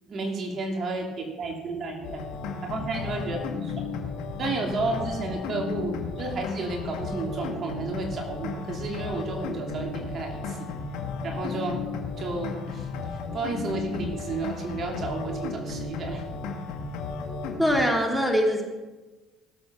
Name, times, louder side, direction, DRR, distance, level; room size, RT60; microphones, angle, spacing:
voice 1, 0.0-2.3 2.6-3.9 4.4-10.7 11.2-11.9 12.2-12.9 13.3-16.2, right 3 dB, 50° right, 2 dB, 2.9 m, -32 dB
sound 1, 2.0-17.8, left 4 dB, 75° left, 2.1 m, -34 dB
voice 2, 17.6-18.6, equal, 5° right, 1 dB, 3.0 m, -22 dB
17.5 x 7.8 x 6.2 m, 1.2 s
supercardioid pair, 75°, 0 cm